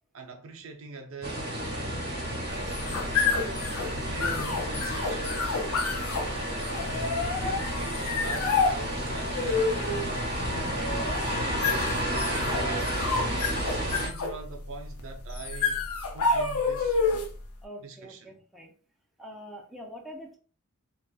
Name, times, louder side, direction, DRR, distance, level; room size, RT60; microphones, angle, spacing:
voice 1, 0.1-1.5 2.8-3.7 4.0-5.6 6.2-7.0 7.4-9.8 10.0-11.9 12.2-13.1 13.8-15.9 16.1-17.0 17.8-18.4, right 4 dB, 60° right, 0.5 m, -42 dB
sound 1, 1.2-14.1, equal, 45° right, 1.2 m, -31 dB
sound 2, 2.5-17.4, left 4 dB, 75° left, 0.6 m, -29 dB
voice 2, 17.6-18.7 19.2-20.4, equal, ahead, 0.5 m, -44 dB
3.9 x 2.2 x 2.3 m
head